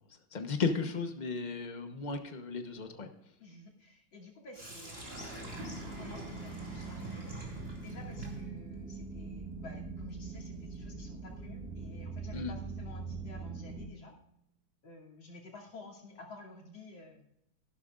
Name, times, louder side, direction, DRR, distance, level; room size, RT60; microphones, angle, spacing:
voice 1, 0.3-3.1 12.3-12.5, left 4 dB, 35° left, 6 dB, 0.7 m, -34 dB
voice 2, 3.4-7.3 7.8-14.1 14.8-17.2, left 3 dB, 65° left, -3 dB, 3.4 m, -52 dB
Sink (filling or washing), 4.5-12.5, right 1 dB, 30° right, 2.7 m, -47 dB
sound 1, 5.5-13.9, right 4 dB, ahead, 1.5 m, -43 dB
15.5 x 11.5 x 2.5 m, 0.76 s
omnidirectional pair, 2.3 m